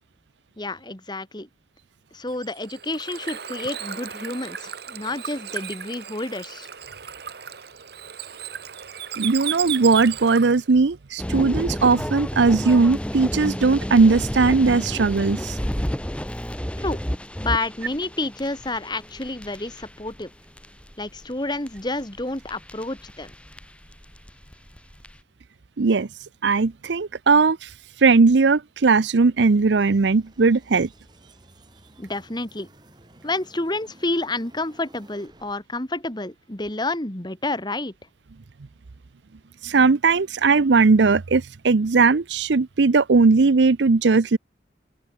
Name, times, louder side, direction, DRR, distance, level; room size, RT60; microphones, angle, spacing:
voice 1, 0.6-1.5 2.1-6.7 16.8-17.0 17.4-20.3 21.0-23.3 32.0-32.7 33.2-37.9, left 2 dB, 25° left, 2.0 m, -29 dB
Bird / Water, 2.3-10.7, right 9 dB, 60° right, 1.3 m, -35 dB
voice 2, 9.2-15.5 25.8-26.1 26.4-27.6 28.0-30.9 39.6-44.4, right 4 dB, 75° right, 0.6 m, -18 dB
sound 1, 11.2-25.2, equal, 5° left, 1.6 m, -31 dB
sound 2, 29.4-35.5, right 1 dB, 25° right, 6.4 m, -53 dB
open air
head